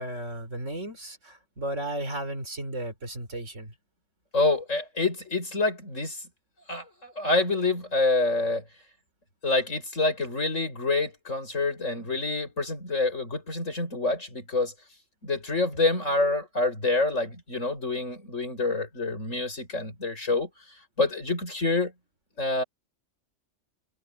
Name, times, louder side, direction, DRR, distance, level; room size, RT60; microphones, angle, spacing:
voice 1, 0.0-3.7, right 1 dB, 75° right, 4.4 m, -34 dB
voice 2, 4.3-6.2 6.7-8.6 9.4-14.7 15.2-20.5 21.0-21.9 22.4-22.6, left 3 dB, 85° left, 6.8 m, -27 dB
omnidirectional pair, 1.3 m